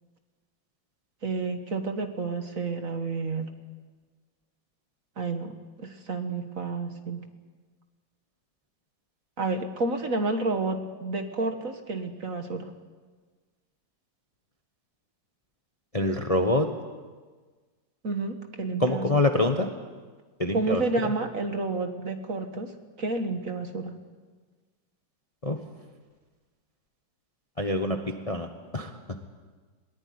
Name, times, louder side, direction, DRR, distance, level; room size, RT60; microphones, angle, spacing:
voice 1, 1.2-3.5 5.2-7.2 9.4-12.7 18.0-19.1 20.5-22.7 23.0-23.9, right 3 dB, 45° right, 7 dB, 1.8 m, -30 dB
voice 2, 15.9-16.7 18.8-19.7 20.4-21.1 25.4-25.6 27.6-28.5 28.7-28.9, left 1 dB, 20° left, 5 dB, 1.1 m, -25 dB
21.0 x 19.0 x 9.6 m, 1.4 s
omnidirectional pair, 2.1 m